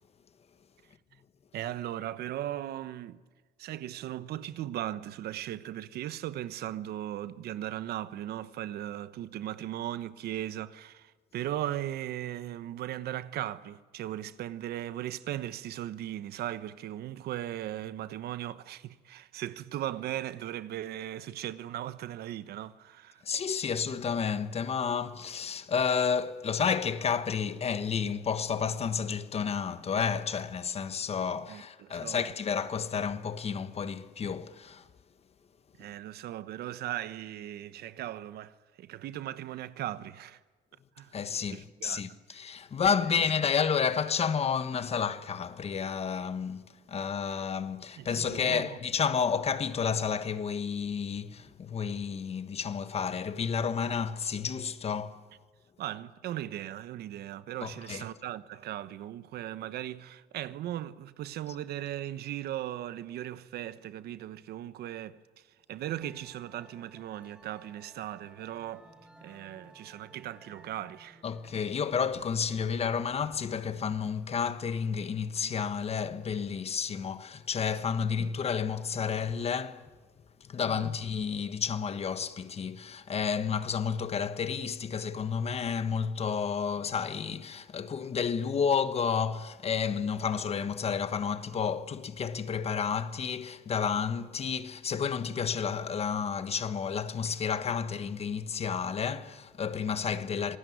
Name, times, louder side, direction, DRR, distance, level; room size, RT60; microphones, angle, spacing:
voice 1, 1.5-3.2 3.6-23.2 31.5-32.3 35.8-40.4 41.0-41.1 41.5-42.2 43.0-43.2 47.3-47.4 48.0-48.8 55.8-68.9 69.2-71.2 80.6-80.9, right 12 dB, 70° right, 1.0 m, -38 dB
voice 2, 23.2-34.9 41.1-55.2 57.6-58.0 71.2-79.9 80.4-100.6, left 6 dB, 35° left, 1.3 m, -31 dB
Musical instrument, 66.0-81.5, right 1 dB, 5° right, 5.2 m, -59 dB
26.5 x 19.5 x 9.5 m
cardioid pair, 110°, 17 cm